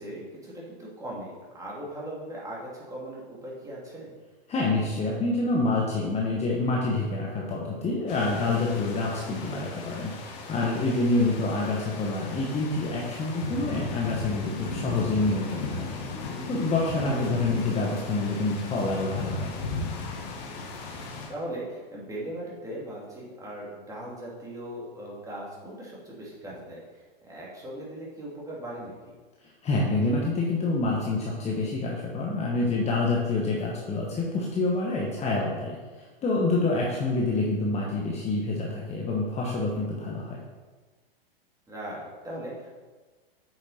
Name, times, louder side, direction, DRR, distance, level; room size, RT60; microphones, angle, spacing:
voice 1, 0.0-4.1 16.9-17.3 20.5-20.7 21.3-29.1 36.6-36.8 41.7-42.8, right 1 dB, 10° right, -5 dB, 3.0 m, -39 dB
voice 2, 4.5-15.8 16.5-19.5 29.6-40.4, left 2 dB, 20° left, -3 dB, 1.4 m, -27 dB
sound 1, 8.1-21.3, left 3 dB, 50° left, 2.0 m, -36 dB
8.6 x 6.5 x 4.4 m, 1.3 s
hypercardioid pair, 120°, 30 cm